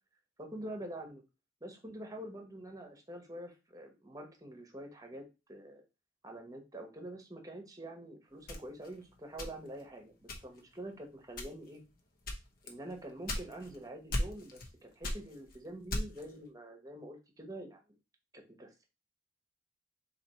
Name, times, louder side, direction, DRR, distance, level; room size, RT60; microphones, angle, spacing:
voice 1, 0.4-1.2 1.6-5.8 6.2-11.8 12.6-17.8 18.3-18.8, right 1 dB, 20° right, 3 dB, 1.0 m, -46 dB
sound 1, 8.5-9.9 10.3-10.7 11.3-11.8 12.2-13.8 14.1-14.7 15.0-16.3, left 1 dB, 50° left, 0.9 m, -37 dB
4.2 x 2.9 x 4.2 m, 0.28 s
head